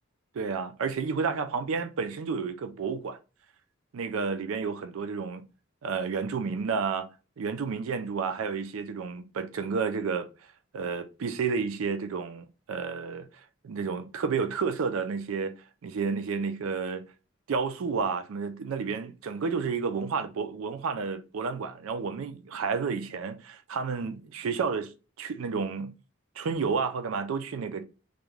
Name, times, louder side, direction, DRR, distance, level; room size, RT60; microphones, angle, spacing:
voice 1, 0.3-3.2 3.9-5.4 5.8-7.1 7.4-10.3 10.7-13.3 13.6-15.5 15.8-17.0 17.5-24.9 25.2-26.0 26.4-27.8, right 5 dB, 80° right, 0.4 m, -31 dB
2.5 x 2.2 x 3.1 m
head